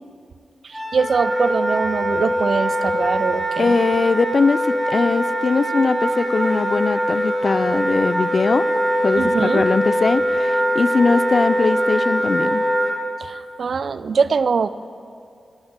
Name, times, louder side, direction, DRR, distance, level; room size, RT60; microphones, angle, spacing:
voice 1, 0.6-3.8 9.2-9.6 13.2-14.7, right 5 dB, 65° right, 15 dB, 0.3 m, -22 dB
Wind instrument woodwind instrument, 0.7-12.9, equal, 10° right, 2.1 m, -22 dB
voice 2, 3.6-8.7 9.0-12.6, left 4 dB, 55° left, 15 dB, 0.4 m, -20 dB
18.0 x 8.7 x 3.7 m, 2.5 s
cardioid pair, 60°, 0 cm